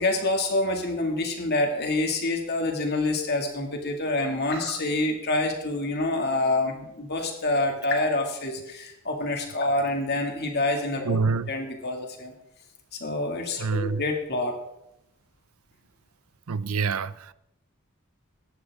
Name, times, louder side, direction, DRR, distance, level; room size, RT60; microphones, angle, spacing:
voice 1, 0.0-11.2 11.5-12.3 12.9-14.6, left 2 dB, 50° left, 3 dB, 2.3 m, -27 dB
voice 2, 11.1-11.5 13.6-14.0 16.5-17.3, right 4 dB, 85° right, 17 dB, 0.6 m, -26 dB
17.5 x 11.5 x 3.7 m, 0.82 s
head